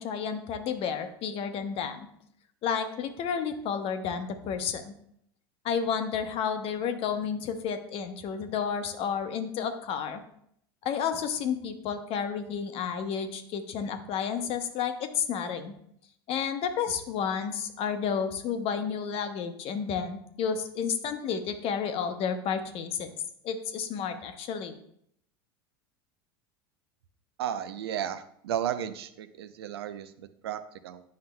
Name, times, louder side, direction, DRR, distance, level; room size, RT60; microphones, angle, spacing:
voice 1, 0.0-2.1 2.6-4.9 5.6-10.2 10.8-15.7 16.3-23.1 23.4-24.7, left 7 dB, 50° left, 8 dB, 0.9 m, -31 dB
voice 2, 27.4-31.0, right 10 dB, 85° right, 10 dB, 0.6 m, -34 dB
9.5 x 5.7 x 2.2 m, 0.71 s
hypercardioid pair, 95°, 13 cm